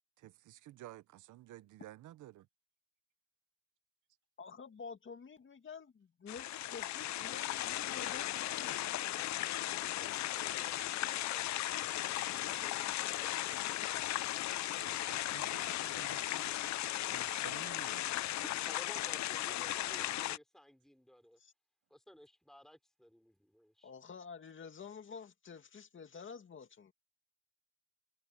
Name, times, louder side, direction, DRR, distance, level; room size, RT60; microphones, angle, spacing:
voice 1, 0.2-2.5 12.5-12.7 13.9-14.2 14.7-16.6 17.1-18.1, right 14 dB, 80° right, 0.9 m, -53 dB
voice 2, 4.4-8.8 21.4-21.5 23.8-26.9, left 5 dB, 40° left, 2.4 m, -49 dB
sound 1, 6.3-20.4, left 14 dB, 65° left, 0.6 m, -36 dB
voice 3, 18.0-21.4 21.9-23.9, equal, ahead, 3.5 m, -57 dB
cardioid pair, 90°, 30 cm